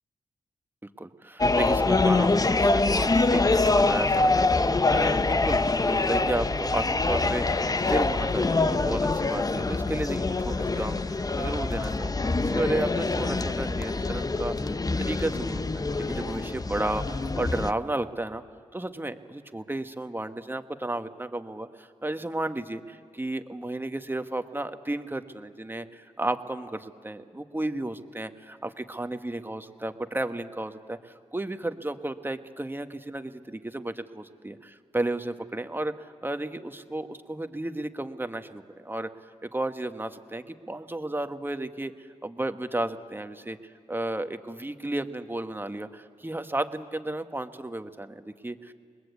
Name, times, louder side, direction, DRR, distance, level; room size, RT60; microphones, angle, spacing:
voice 1, 1.0-18.4 18.7-34.6 34.9-39.1 39.4-43.6 43.9-48.7, right 1 dB, 15° right, 8 dB, 1.5 m, -33 dB
sound 1, 1.4-17.7, left 3 dB, 30° left, 0.9 m, -25 dB
29.5 x 21.0 x 8.4 m, 2.1 s
cardioid pair, 50°, 13 cm